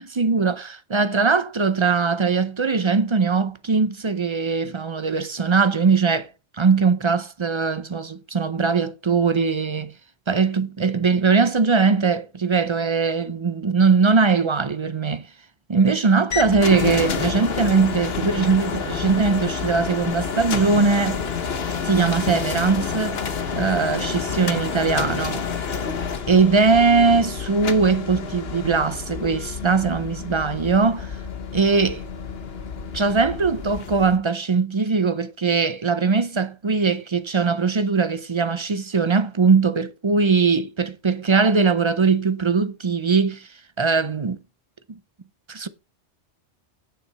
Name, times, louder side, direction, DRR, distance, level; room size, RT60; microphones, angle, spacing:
voice 1, 0.0-6.3 6.6-9.9 10.3-15.3 15.7-21.2 21.8-23.2 23.5-25.6 26.3-31.2 31.5-32.0 32.9-43.5 43.8-44.4 44.9-45.0 45.5-45.7, right 4 dB, 35° right, 0.5 m, -20 dB
sound 1, 16.3-34.2, left 6 dB, 60° left, 1.2 m, -29 dB
9.3 x 7.6 x 4.1 m
omnidirectional pair, 1.2 m